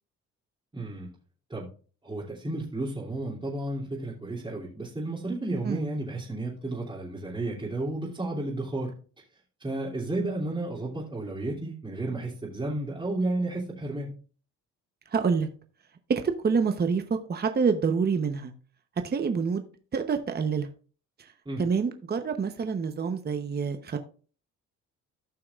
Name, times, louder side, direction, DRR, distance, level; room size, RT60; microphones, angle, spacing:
voice 1, 0.7-1.1 1.5-1.7 2.0-8.9 9.6-14.1 21.4-21.6, right 2 dB, 15° right, -6 dB, 2.7 m, -32 dB
voice 2, 15.1-15.5 16.2-18.5 19.0-20.7 21.6-24.0, right 5 dB, 30° right, 7 dB, 0.9 m, -27 dB
15.0 x 5.8 x 2.4 m, 0.39 s
cardioid pair, 90°, 30 cm